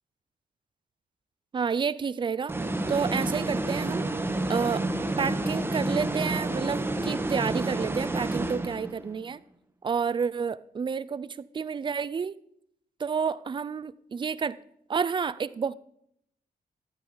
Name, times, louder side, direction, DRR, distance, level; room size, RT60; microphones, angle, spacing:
voice 1, 1.5-2.5 2.9-4.0 4.5-4.8 5.2-9.4 9.8-12.3 13.0-14.6 14.9-15.7, right 6 dB, 30° right, 18 dB, 0.4 m, -29 dB
sound 1, 2.5-9.1, right 2 dB, 15° right, 0.9 m, -29 dB
13.5 x 12.0 x 3.9 m, 0.75 s
wide cardioid pair, 135°, 16 cm